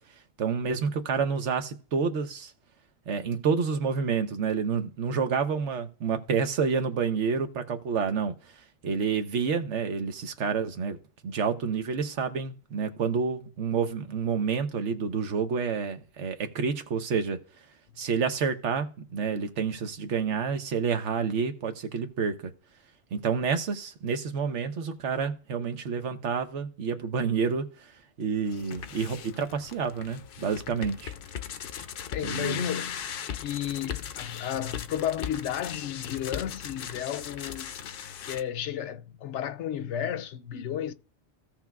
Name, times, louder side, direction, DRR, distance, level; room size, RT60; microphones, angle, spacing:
voice 1, 0.4-2.5 3.1-8.5 8.8-11.0 11.2-17.4 18.0-22.5 23.1-27.9 28.2-31.1 32.2-32.7, right 6 dB, 85° right, 1.2 m, -29 dB
sound 1, 28.5-38.4, left 8 dB, 60° left, 0.6 m, -38 dB
voice 2, 32.1-37.7 38.2-40.9, left 10 dB, 85° left, 0.9 m, -33 dB
16.5 x 5.9 x 2.3 m
omnidirectional pair, 1.2 m